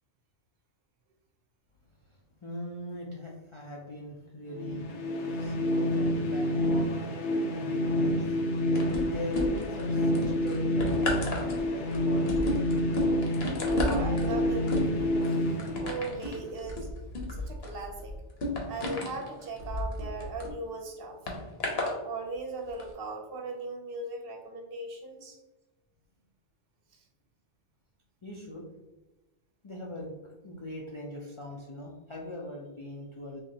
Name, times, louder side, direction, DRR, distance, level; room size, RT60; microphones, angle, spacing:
voice 1, 2.1-8.4 9.0-12.6 28.2-28.7 29.6-30.1 30.4-33.4, left 1 dB, 50° left, -3 dB, 0.3 m, -41 dB
sound 1, 4.5-16.4, left 1 dB, 90° left, 0.9 m, -28 dB
sound 2, 8.8-9.8 10.1-20.5 21.3-21.9 22.7-22.8, left 2 dB, 65° left, 1.0 m, -33 dB
voice 2, 13.6-15.4 15.8-16.9 17.3-18.1 18.7-21.2 21.8-25.4, right 3 dB, 60° right, 2 dB, 0.8 m, -38 dB
3.7 x 3.0 x 2.7 m, 1.1 s
omnidirectional pair, 1.2 m